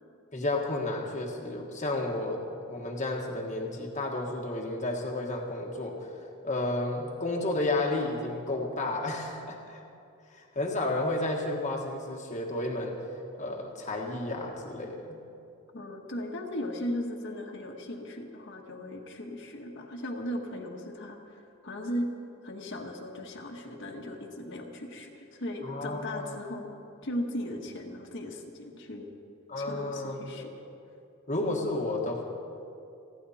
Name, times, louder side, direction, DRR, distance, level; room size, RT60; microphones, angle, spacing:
voice 1, 0.3-2.4 2.7-6.1 6.4-9.8 10.3-13.0 13.4-15.2 25.6-26.4 29.5-30.5 31.3-32.2, left 2 dB, 35° left, -1 dB, 1.5 m, -32 dB
voice 2, 15.7-22.1 22.4-26.7 27.0-29.1 29.6-30.5, left 1 dB, 55° left, 0 dB, 1.6 m, -37 dB
30.0 x 10.5 x 4.3 m, 2.6 s
head